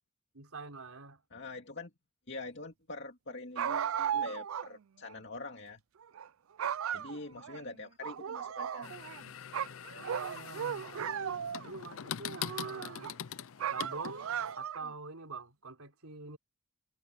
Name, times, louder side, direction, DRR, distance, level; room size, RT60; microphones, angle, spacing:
voice 1, 0.3-1.2 7.4-7.5 10.0-13.1 13.7-16.4, right 4 dB, 90° right, 4.2 m, -45 dB
voice 2, 1.3-1.9 2.3-5.8 6.9-9.0, left 2 dB, 55° left, 2.5 m, -44 dB
sound 1, 3.6-4.7 5.1-5.2 6.0-6.3 6.6-7.6 8.0-9.2 9.5-11.8 12.3-13.1 13.6-14.9, right 8 dB, 75° right, 0.4 m, -36 dB
sound 2, 8.8-14.5, left 9 dB, 75° left, 0.5 m, -43 dB
head